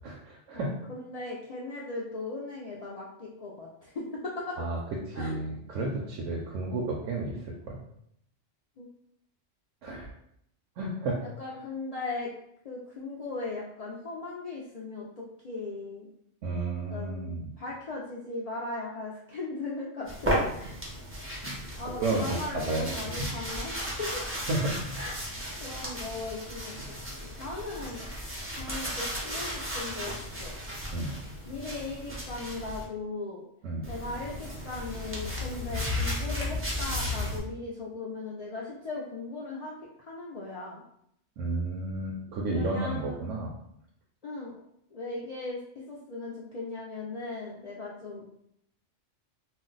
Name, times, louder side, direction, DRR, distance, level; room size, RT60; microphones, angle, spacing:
voice 1, 0.0-0.7 4.6-4.8 5.1-7.8 9.8-10.1 10.8-11.2 16.4-17.5 22.0-22.9 23.1-23.4 24.5-24.9 30.9-31.2 33.6-33.9 41.4-43.5, right 2 dB, 80° right, -2 dB, 0.9 m, -32 dB
voice 2, 0.5-4.6 5.2-5.3 8.8-8.9 11.4-12.3 12.6-16.1 16.9-20.7 21.8-24.3 25.0-25.2 25.6-26.8 27.1-28.1 28.6-30.6 31.5-33.4 33.9-39.8 40.1-40.8 42.5-43.1 44.2-44.6 44.9-45.6 45.9-48.3, left 3 dB, 70° left, -5 dB, 0.3 m, -38 dB
sound 1, 20.1-32.8 33.8-37.4, equal, 20° right, 0.4 m, -35 dB
2.5 x 2.1 x 3.8 m, 0.72 s
omnidirectional pair, 1.3 m